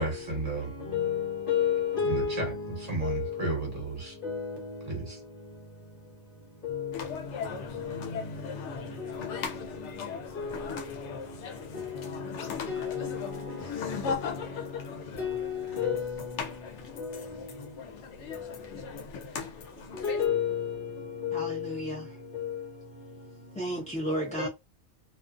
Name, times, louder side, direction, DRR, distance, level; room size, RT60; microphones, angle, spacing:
voice 1, 0.0-0.7 2.0-4.2 4.9-5.2, right 3 dB, 35° right, 1.2 m, -33 dB
voice 2, 0.9-2.5 3.0-3.2 4.2-4.6 6.6-6.9 10.4-10.5 11.8-11.9 12.7-13.2 15.2-16.3 17.0-17.1 20.0-20.7 21.2-21.6 22.3-22.6 24.4-24.5, left 7 dB, 55° left, 0.9 m, -30 dB
sound 1, 6.9-20.3, left 6 dB, 85° left, 0.9 m, -38 dB
voice 3, 21.3-22.2 23.6-24.5, equal, 10° left, 0.5 m, -33 dB
2.4 x 2.4 x 2.4 m
omnidirectional pair, 1.2 m